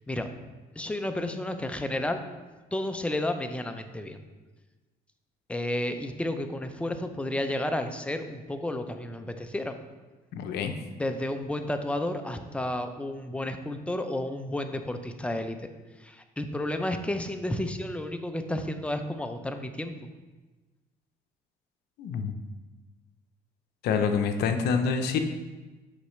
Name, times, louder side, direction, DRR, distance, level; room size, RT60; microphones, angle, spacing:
voice 1, 0.8-2.2 2.7-4.2 5.5-9.7 11.0-15.7 16.0-20.1, left 1 dB, 5° left, 7 dB, 0.5 m, -32 dB
voice 2, 10.3-10.7 22.0-22.3 23.8-25.2, left 6 dB, 75° left, 7 dB, 0.7 m, -26 dB
8.3 x 5.7 x 3.2 m, 1.2 s
cardioid pair, 110°, 17 cm